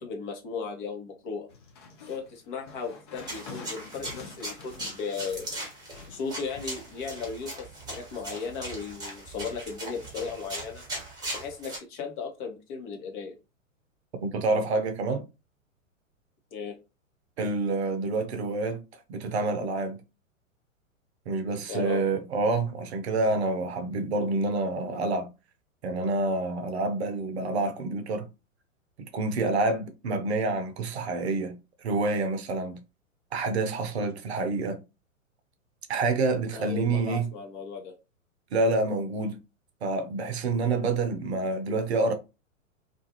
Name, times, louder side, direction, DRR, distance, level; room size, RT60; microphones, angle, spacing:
voice 1, 0.0-1.5 2.1-5.5 6.1-10.8 11.3-13.3 16.5-16.8 21.7-22.0 36.5-37.9, left 5 dB, 40° left, 0.9 m, -36 dB
sound 1, 1.5-7.3, left 4 dB, 20° left, 0.3 m, -48 dB
sound 2, 3.2-11.8, right 1 dB, 10° right, 1.0 m, -39 dB
voice 2, 14.2-15.3 17.4-18.8 19.1-20.0 21.3-25.3 25.8-28.3 29.0-32.8 33.3-34.8 35.9-37.3 38.5-39.4 39.8-42.1, right 3 dB, 55° right, 0.7 m, -28 dB
2.5 x 2.4 x 2.8 m
figure-of-eight pair, 105°, 40 cm